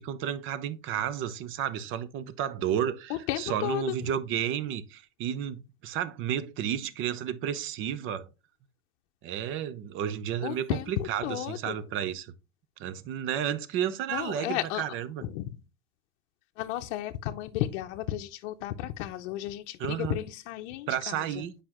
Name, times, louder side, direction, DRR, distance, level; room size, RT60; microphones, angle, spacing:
voice 1, 0.0-8.3 9.2-12.3 12.8-15.3 19.8-20.2 20.9-21.5, right 9 dB, 35° right, 0.6 m, -32 dB
voice 2, 3.1-3.8 10.4-11.7 14.1-14.8 15.2-15.4 16.6-21.1, left 13 dB, 65° left, 0.7 m, -33 dB
7.7 x 5.0 x 3.0 m
supercardioid pair, 140°, 37 cm